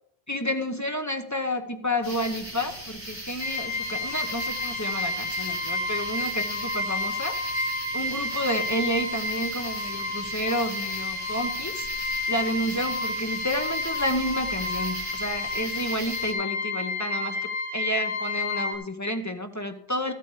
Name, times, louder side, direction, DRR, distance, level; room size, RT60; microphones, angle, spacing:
voice 1, 0.3-7.4 7.9-11.9 12.3-17.4 17.7-20.1, equal, 15° left, 5 dB, 0.9 m, -30 dB
sound 1, 2.0-16.3, right 1 dB, 25° right, 2.7 m, -38 dB
sound 2, 3.4-18.7, left 2 dB, 60° left, 2.0 m, -31 dB
13.0 x 8.5 x 4.9 m, 0.69 s
omnidirectional pair, 1.1 m